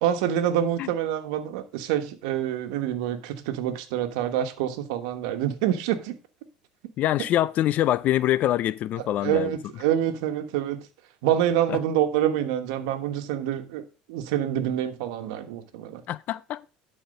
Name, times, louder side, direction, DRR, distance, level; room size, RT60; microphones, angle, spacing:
voice 1, 0.0-6.2 9.2-10.9 11.2-13.8 14.1-16.0, right 10 dB, 85° right, 1.2 m, -26 dB
voice 2, 7.0-9.5 11.7-11.8 16.1-16.6, left 13 dB, 50° left, 0.4 m, -24 dB
11.5 x 4.3 x 5.2 m
supercardioid pair, 115°, 3 cm